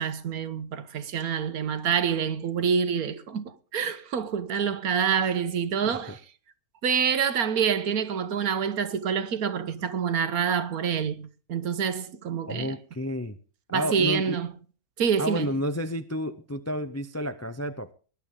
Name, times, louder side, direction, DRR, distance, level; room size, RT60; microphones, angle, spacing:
voice 1, 0.0-6.2 6.8-12.7 13.7-14.5 15.0-15.5, right 7 dB, 80° right, 1.5 m, -27 dB
voice 2, 5.9-6.2 12.5-13.4 13.7-14.4 15.2-17.9, equal, 25° left, 0.3 m, -31 dB
20.0 x 10.5 x 3.7 m
omnidirectional pair, 1.6 m